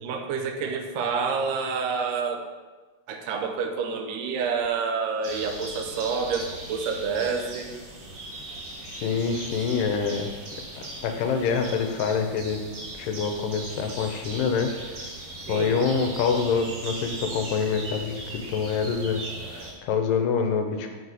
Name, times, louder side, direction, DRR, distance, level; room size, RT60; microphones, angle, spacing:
voice 1, 0.0-2.5 3.1-7.7 15.5-15.9, right 5 dB, 85° right, 4 dB, 2.2 m, -28 dB
sound 1, 5.2-19.7, right 2 dB, 60° right, 1.1 m, -39 dB
voice 2, 9.0-10.3 11.0-12.6 13.0-15.1 15.5-21.0, left 5 dB, 85° left, 5 dB, 2.3 m, -26 dB
6.7 x 4.1 x 4.7 m, 1.3 s
omnidirectional pair, 3.8 m